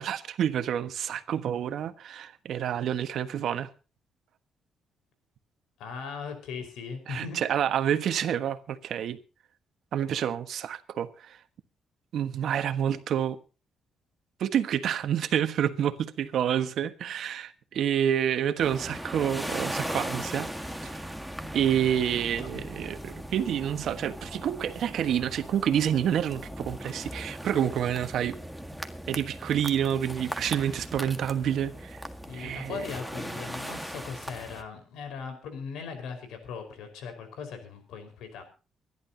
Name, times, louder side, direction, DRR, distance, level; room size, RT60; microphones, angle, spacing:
voice 1, 0.0-3.7 7.1-9.2 9.9-11.4 12.1-13.4 14.4-20.5 20.8-21.1 21.5-28.4 29.1-32.0 32.3-32.8, right 9 dB, 70° right, 1.4 m, -28 dB
voice 2, 5.8-7.4 22.4-22.5 32.3-38.4, left 5 dB, 85° left, 4.9 m, -39 dB
sound 1, 18.6-34.6, equal, ahead, 1.7 m, -38 dB
24.5 x 11.5 x 2.9 m
cardioid pair, 90°, 0 cm